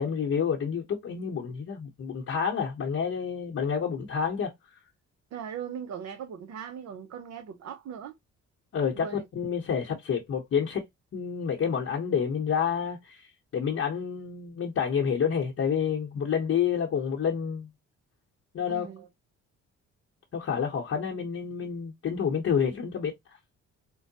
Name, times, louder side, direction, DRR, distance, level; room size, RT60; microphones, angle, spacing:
voice 1, 0.0-4.5 8.7-9.1 9.3-10.8 11.1-13.3 13.5-17.7 18.5-18.9 20.3-23.1, left 7 dB, 50° left, 0.9 m, -28 dB
voice 2, 5.3-8.2 9.0-9.3 18.7-19.1, right 8 dB, 60° right, 0.7 m, -39 dB
4.5 x 2.1 x 2.7 m
cardioid pair, 90°, 30 cm